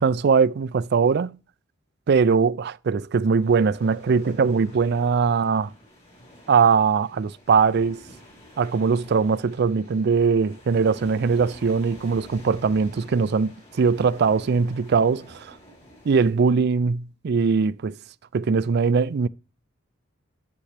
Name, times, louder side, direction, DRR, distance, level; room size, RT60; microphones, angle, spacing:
voice 1, 0.0-1.4 2.1-5.7 6.5-8.0 8.6-15.6 16.1-18.0 18.3-19.3, right 5 dB, 55° right, 0.4 m, -21 dB
sound 1, 3.4-16.3, equal, 35° left, 4.1 m, -48 dB
11.0 x 7.0 x 3.3 m
head